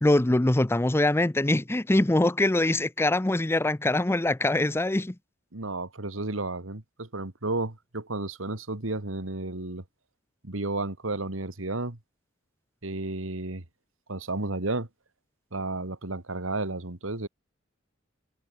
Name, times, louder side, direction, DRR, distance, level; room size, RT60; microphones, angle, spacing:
voice 1, 0.0-5.2, left 1 dB, 10° left, 0.6 m, -23 dB
voice 2, 5.5-9.8 10.4-12.0 12.8-13.6 14.1-14.9 15.5-17.3, right 2 dB, 85° right, 2.3 m, -32 dB
head